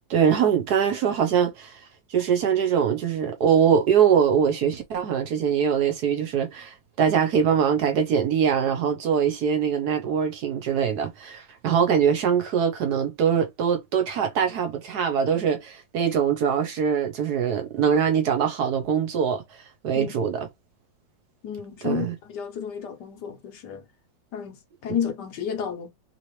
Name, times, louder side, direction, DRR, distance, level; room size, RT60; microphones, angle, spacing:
voice 1, 0.0-1.8 2.1-19.4 19.8-20.5 21.8-22.1, right 7 dB, 65° right, 1.1 m, -23 dB
voice 2, 21.4-23.8 24.3-25.9, left 8 dB, 65° left, 1.4 m, -32 dB
3.2 x 2.8 x 3.1 m
omnidirectional pair, 2.0 m